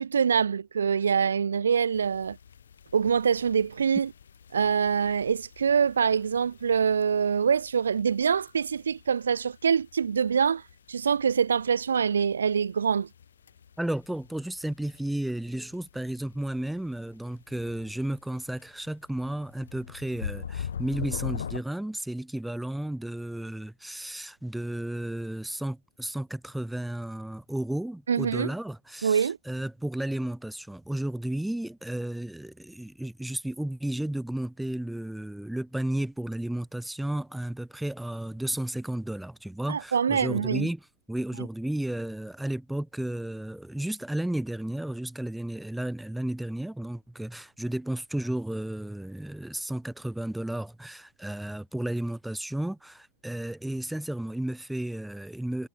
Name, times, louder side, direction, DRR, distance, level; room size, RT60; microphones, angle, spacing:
voice 1, 0.0-2.4 2.9-4.1 4.5-10.6 10.9-13.1 28.1-28.5 29.0-29.4 39.7-40.7, right 6 dB, 70° right, 1.0 m, -25 dB
sound 1, 1.9-21.6, left 8 dB, 70° left, 3.5 m, -43 dB
voice 2, 13.8-40.8 41.1-55.7, right 1 dB, 5° right, 0.9 m, -33 dB
figure-of-eight pair, 90°, 0 cm